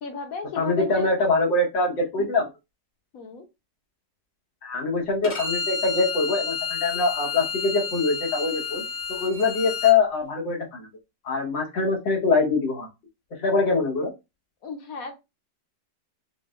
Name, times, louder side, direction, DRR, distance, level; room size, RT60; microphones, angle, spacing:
voice 1, 0.0-1.1 3.1-3.4 14.6-15.1, left 4 dB, 60° left, 5 dB, 1.1 m, -34 dB
voice 2, 0.6-2.5 4.6-8.8 9.1-10.9 11.2-12.9 13.4-14.1, left 3 dB, 90° left, 0 dB, 2.0 m, -23 dB
Bowed string instrument, 5.2-9.9, left 5 dB, 35° left, 0.5 m, -30 dB
5.7 x 2.2 x 2.4 m, 0.24 s
omnidirectional pair, 2.0 m